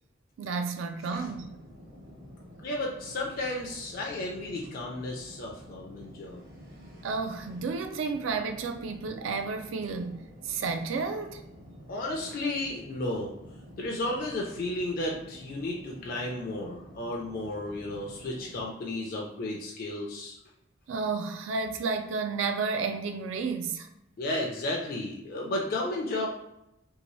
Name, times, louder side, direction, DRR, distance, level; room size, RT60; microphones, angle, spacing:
voice 1, 0.4-1.6 7.0-11.4 20.9-23.9, right 4 dB, 80° right, 0.4 m, -32 dB
sound 1, 1.1-18.6, equal, 50° right, 0.7 m, -49 dB
voice 2, 2.6-6.4 11.9-13.3 13.8-20.4 24.2-26.3, left 1 dB, 50° left, 0.4 m, -33 dB
2.8 x 2.6 x 3.0 m
head